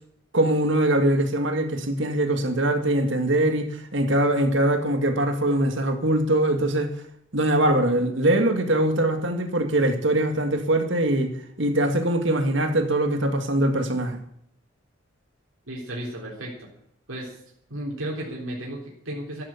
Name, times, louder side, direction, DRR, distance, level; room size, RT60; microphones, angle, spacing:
voice 1, 0.3-6.9 7.3-14.2, right 1 dB, 65° right, 2.0 m, -22 dB
voice 2, 15.7-16.5 17.1-17.3 17.7-19.4, right 1 dB, 85° right, 3.8 m, -33 dB
12.5 x 11.0 x 7.3 m
head